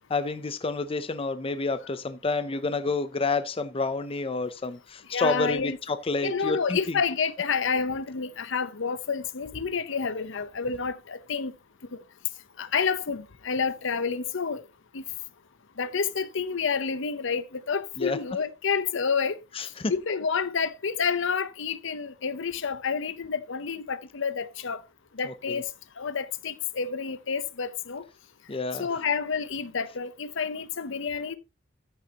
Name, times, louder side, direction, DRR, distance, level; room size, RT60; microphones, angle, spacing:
voice 1, 0.1-7.0 18.0-18.2 19.6-19.9 25.3-25.6 28.5-28.9, left 3 dB, 30° left, 0.5 m, -29 dB
voice 2, 5.1-5.8 6.2-11.5 12.6-14.6 14.9-15.0 15.8-19.4 19.9-24.8 25.2-25.6 26.0-28.0 28.8-31.4, left 5 dB, 65° left, 0.8 m, -29 dB
14.0 x 6.5 x 2.9 m
head